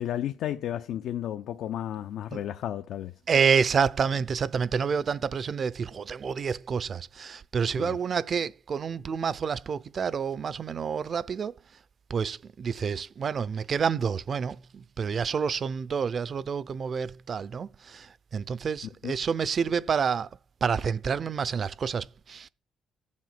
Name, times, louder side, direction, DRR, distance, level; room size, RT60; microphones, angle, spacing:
voice 1, 0.0-3.1 7.8-8.0 19.0-19.2, left 11 dB, 80° left, 0.7 m, -33 dB
voice 2, 3.3-11.5 12.1-20.3 20.6-22.5, right 6 dB, 50° right, 0.6 m, -28 dB
14.0 x 7.5 x 5.9 m
cardioid pair, 90°, 0 cm